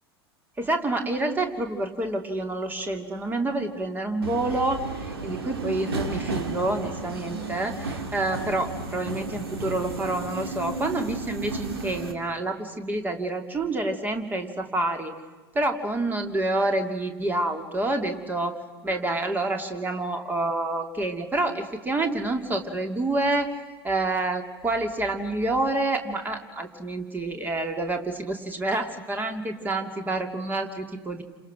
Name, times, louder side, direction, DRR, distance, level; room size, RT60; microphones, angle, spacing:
voice 1, 0.6-15.1 15.5-23.5 23.8-31.2, right 2 dB, 15° right, 6 dB, 2.7 m, -28 dB
Subway metro underground, 4.2-12.1, right 3 dB, 70° right, 2.9 m, -33 dB
30.0 x 26.5 x 6.3 m, 1.4 s
figure-of-eight pair, 85°, 13 cm